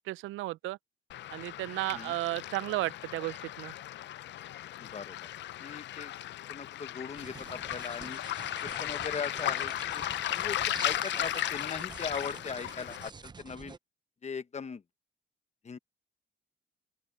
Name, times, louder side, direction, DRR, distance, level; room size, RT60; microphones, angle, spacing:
voice 1, 0.1-0.8 1.3-3.7, right 18 dB, 90° right, 0.4 m, -34 dB
Waves surf, 1.1-13.1, left 13 dB, 65° left, 0.5 m, -36 dB
voice 2, 4.8-5.2 5.6-6.1 6.5-8.2 8.6-10.0 10.3-13.8 14.2-14.8 15.6-15.8, left 5 dB, 35° left, 1.1 m, -39 dB
sound 1, 7.2-13.8, right 4 dB, 20° right, 0.6 m, -47 dB
open air
cardioid pair, 90°, 20 cm